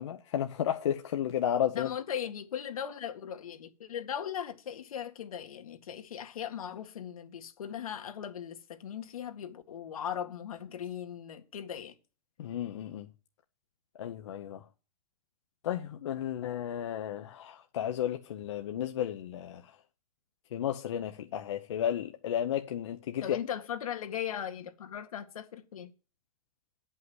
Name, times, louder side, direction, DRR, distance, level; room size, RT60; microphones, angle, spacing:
voice 1, 0.0-1.9 12.4-13.1 14.0-14.6 15.6-19.6 20.5-23.4, left 10 dB, 55° left, 0.9 m, -33 dB
voice 2, 1.8-11.9 23.2-25.9, left 9 dB, 75° left, 1.9 m, -38 dB
9.5 x 5.7 x 7.9 m
hypercardioid pair, 180°, 18 cm